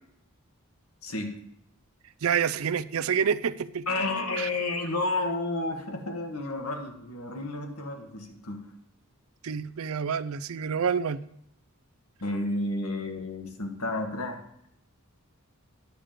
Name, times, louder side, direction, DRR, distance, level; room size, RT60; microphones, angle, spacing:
voice 1, 1.0-1.3 3.9-8.7 12.2-14.4, left 2 dB, 85° left, 4 dB, 1.6 m, -31 dB
voice 2, 2.2-3.9 4.4-4.5 9.4-11.2, right 7 dB, 75° right, 16 dB, 0.5 m, -28 dB
10.0 x 7.4 x 5.1 m, 0.74 s
head